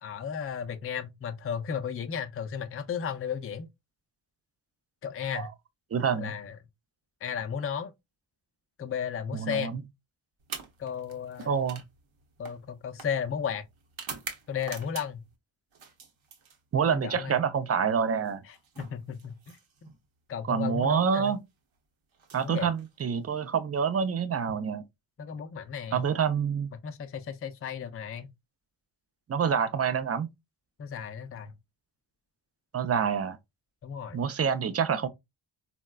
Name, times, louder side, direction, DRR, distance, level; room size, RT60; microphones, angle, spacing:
voice 1, 0.0-3.7 5.0-5.5 6.2-6.6 7.2-7.9 8.8-9.7 10.8-11.6 12.4-13.6 14.5-15.2 16.9-17.4 18.5-19.9 20.3-21.3 22.4-22.7 25.2-26.0 26.7-28.3 30.8-31.5 33.8-34.2, left 7 dB, 30° left, 0.4 m, -34 dB
voice 2, 5.9-6.3 9.3-9.8 11.5-11.8 16.7-18.4 20.5-21.4 22.3-24.8 25.9-26.7 29.3-30.3 32.7-33.4 34.1-35.1, right 7 dB, 30° right, 0.5 m, -27 dB
sound 1, 10.4-15.3 15.7-17.0 18.2-20.0 21.1-21.3 22.1-23.3, right 5 dB, 70° right, 0.9 m, -45 dB
3.9 x 2.1 x 2.2 m
cardioid pair, 50°, 48 cm